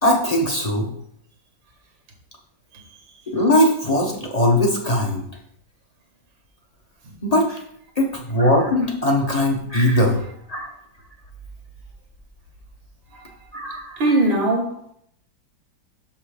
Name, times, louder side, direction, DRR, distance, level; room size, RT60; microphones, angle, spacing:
voice 1, 0.0-0.9 3.3-5.2 7.2-7.6 8.0-10.2 10.5-10.7 13.5-14.0, left 1 dB, 30° left, 0.8 m, -20 dB
voice 2, 14.0-14.9, right 1 dB, 85° right, 2.0 m, -20 dB
6.3 x 5.7 x 5.0 m
omnidirectional pair, 2.0 m